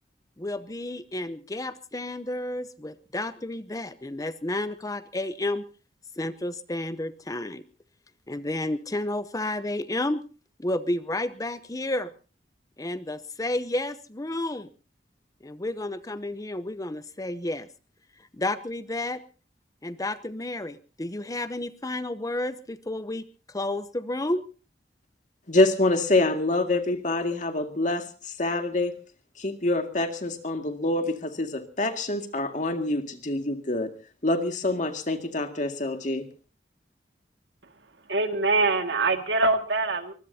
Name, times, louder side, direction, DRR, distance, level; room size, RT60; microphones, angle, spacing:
voice 1, 0.4-5.7 6.2-7.6 8.3-10.2 10.6-12.1 12.8-14.7 15.4-17.7 18.2-19.2 19.8-24.5, left 1 dB, 20° left, 13 dB, 0.7 m, -31 dB
voice 2, 25.5-28.9 29.4-33.9 34.2-36.2, left 2 dB, 45° left, 6 dB, 2.1 m, -26 dB
voice 3, 38.1-40.1, right 3 dB, 90° right, 6 dB, 2.1 m, -24 dB
24.0 x 21.0 x 2.8 m, 0.37 s
head